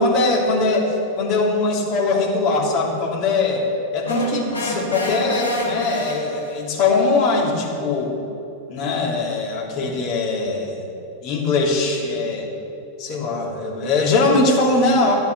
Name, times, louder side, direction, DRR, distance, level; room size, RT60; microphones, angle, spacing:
voice 1, 0.0-3.6 3.9-8.1 8.7-10.9 11.2-12.5 13.0-15.1, left 3 dB, 40° left, -1 dB, 2.8 m, -21 dB
sound 1, 4.0-6.7, equal, 75° left, 2.3 m, -27 dB
13.0 x 8.1 x 6.8 m, 2.8 s
figure-of-eight pair, 90°, 0 cm